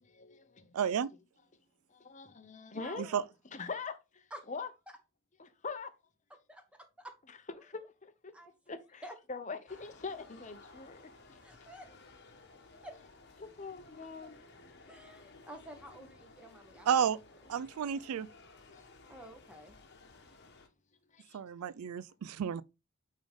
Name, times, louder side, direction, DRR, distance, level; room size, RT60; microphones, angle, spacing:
voice 1, 0.0-0.8 1.9-3.1 3.5-4.7 5.4-5.9 7.3-8.3 8.7-9.0 9.3-11.4 13.4-14.4 17.5-17.7 18.7-18.9 21.1-21.4, left 4 dB, 35° left, 0.7 m, -43 dB
voice 2, 0.7-1.1 3.1-3.2 16.9-17.2 17.5-18.3 21.3-22.6, right 8 dB, 85° right, 0.4 m, -31 dB
voice 3, 2.7-3.2 4.3-4.4 4.9-5.0 6.5-7.1 8.3-8.5 9.0-9.1 11.4-12.1 12.4-13.0 14.2-14.3 14.8-16.9 19.1-19.8, right 1 dB, 5° right, 1.1 m, -50 dB
sound 1, 9.7-20.7, left 3 dB, 50° left, 1.1 m, -57 dB
8.8 x 3.7 x 3.5 m
head